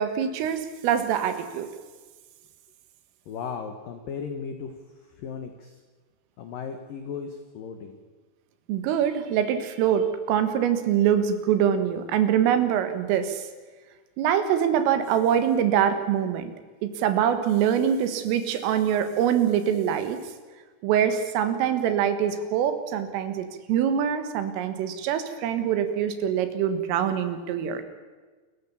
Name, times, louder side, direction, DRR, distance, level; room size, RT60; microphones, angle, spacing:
voice 1, 0.0-1.7 8.7-13.5 14.2-16.5 16.8-20.2 20.8-27.8, right 9 dB, 75° right, 10 dB, 4.0 m, -24 dB
voice 2, 3.3-4.8 5.2-5.8 6.4-8.0, left 6 dB, 80° left, 7 dB, 2.0 m, -36 dB
29.0 x 14.5 x 7.1 m, 1.4 s
omnidirectional pair, 6.0 m